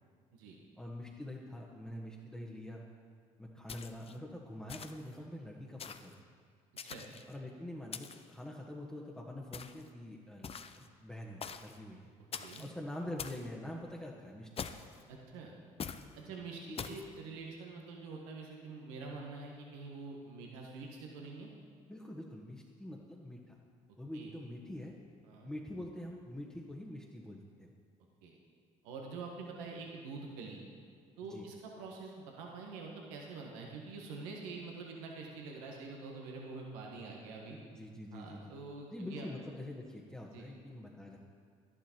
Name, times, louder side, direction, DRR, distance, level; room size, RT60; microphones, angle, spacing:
voice 1, 0.8-2.8 3.4-6.2 7.3-10.5 10.8-12.1 12.6-14.7 16.3-16.4 16.7-17.0 21.9-23.6 24.0-24.9 25.4-27.7 31.3-31.5 37.6-38.5 38.9-41.2, left 1 dB, 5° left, -3 dB, 1.4 m, -45 dB
sound 1, 3.7-4.2 4.7-5.1 5.8-6.1 6.8-7.3 7.9-8.3 9.5-9.9 10.4-10.9 11.4-11.8 12.3-12.7 13.2-13.5 14.6-15.0 15.8-16.1 16.8-17.1, left 6 dB, 35° left, 0.7 m, -44 dB
voice 2, 15.1-15.5 16.2-21.5 24.1-24.3 25.2-25.5 28.2-28.3 28.8-30.6 31.2-37.6 38.1-39.3 40.3-40.5, right 4 dB, 85° right, 0 dB, 1.5 m, -46 dB
11.5 x 11.0 x 4.5 m, 2.1 s
hypercardioid pair, 65°, 16 cm